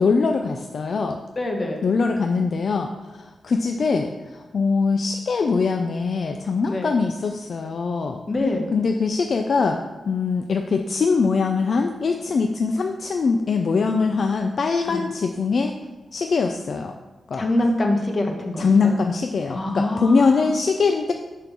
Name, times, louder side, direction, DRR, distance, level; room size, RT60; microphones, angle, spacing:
voice 1, 0.0-1.2 1.8-8.2 8.7-9.8 10.1-15.7 16.1-16.9 17.3-17.5 18.6-21.1, left 4 dB, 60° left, 5 dB, 0.4 m, -22 dB
voice 2, 1.4-1.8 6.7-6.9 8.3-8.7 14.9-15.0 17.3-18.9 19.5-20.5, left 1 dB, 35° left, 2 dB, 1.2 m, -24 dB
6.8 x 3.8 x 6.1 m, 1.2 s
wide cardioid pair, 100°, 0 cm